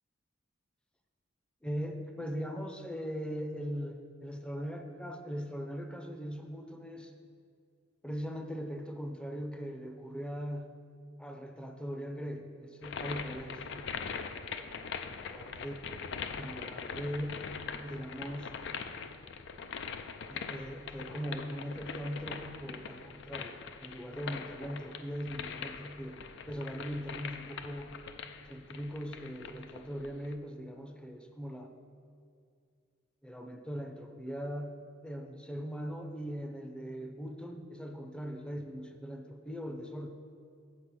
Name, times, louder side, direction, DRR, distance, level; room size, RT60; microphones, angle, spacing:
voice 1, 1.6-7.1 8.0-10.8 11.2-13.6 15.0-15.7 16.4-17.4 17.8-18.5 20.3-26.2 26.5-27.9 28.5-31.7 33.2-40.1, equal, 5° left, 4 dB, 0.6 m, -40 dB
sound 1, 12.8-30.3, left 6 dB, 65° left, 0.4 m, -42 dB
8.2 x 5.2 x 6.1 m, 2.3 s
head